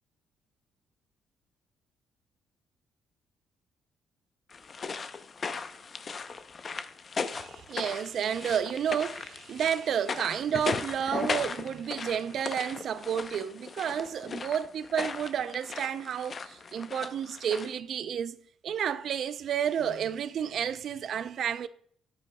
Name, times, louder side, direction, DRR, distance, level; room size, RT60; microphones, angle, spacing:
sound 1, 4.5-17.8, left 5 dB, 40° left, 0.6 m, -37 dB
voice 1, 7.3-18.4 18.6-21.7, right 8 dB, 65° right, 0.5 m, -31 dB
9.6 x 9.2 x 2.2 m
cardioid pair, 90°, 0 cm